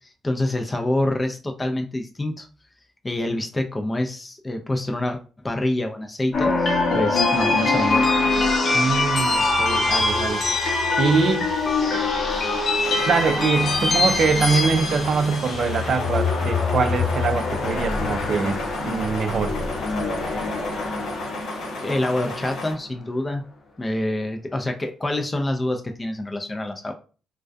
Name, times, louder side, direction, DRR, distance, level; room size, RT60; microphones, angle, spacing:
voice 1, 0.2-2.5 3.0-8.0 21.8-23.4 23.8-26.9, left 1 dB, 20° left, 0.4 m, -26 dB
sound 1, 6.3-22.5, left 3 dB, 55° left, 0.7 m, -23 dB
voice 2, 8.7-10.4 11.0-11.5 13.1-19.6, right 5 dB, 55° right, 0.4 m, -23 dB
sound 2, 12.8-22.7, left 2 dB, 90° left, 0.9 m, -35 dB
2.2 x 2.2 x 2.5 m
cardioid pair, 90°, 0 cm